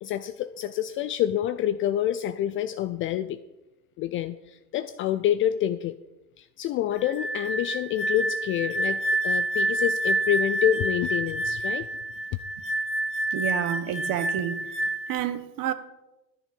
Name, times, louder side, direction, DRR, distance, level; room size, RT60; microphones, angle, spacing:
voice 1, 0.0-3.4 4.0-5.9 6.4-11.9, left 11 dB, 25° left, 0.4 m, -27 dB
sound 1, 7.0-15.2, right 1 dB, 10° right, 2.6 m, -28 dB
voice 2, 13.3-14.6 15.1-15.7, right 10 dB, 40° right, 1.3 m, -29 dB
13.0 x 9.7 x 5.2 m
figure-of-eight pair, 75°, 49 cm